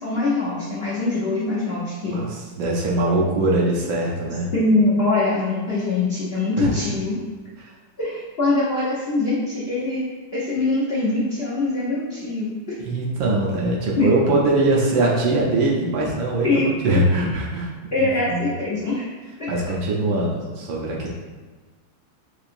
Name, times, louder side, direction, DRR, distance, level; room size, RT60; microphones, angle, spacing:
voice 1, 0.0-2.2 4.5-7.2 8.0-10.0 10.3-12.5 14.0-14.1 16.4-17.0 17.9-19.1 19.4-19.5, left 2 dB, 75° left, -10 dB, 0.5 m, -23 dB
voice 2, 2.1-4.5 6.6-6.9 7.6-7.7 12.8-17.7 18.0-18.5 19.5-21.1, right 2 dB, 70° right, -3 dB, 1.3 m, -22 dB
4.6 x 2.8 x 2.5 m, 1.3 s
omnidirectional pair, 2.4 m